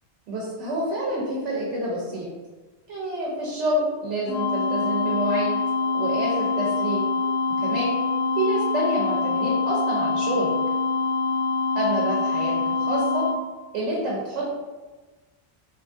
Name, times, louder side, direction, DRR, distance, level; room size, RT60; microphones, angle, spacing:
voice 1, 0.3-2.3 2.9-5.6 5.9-7.0 7.6-8.0 8.4-10.5 11.7-13.3 13.7-14.5, right 1 dB, 90° right, -4 dB, 0.9 m, -27 dB
sound 1, 4.3-13.3, left 4 dB, 70° left, 0.8 m, -25 dB
2.9 x 2.2 x 2.5 m, 1.2 s
omnidirectional pair, 1.2 m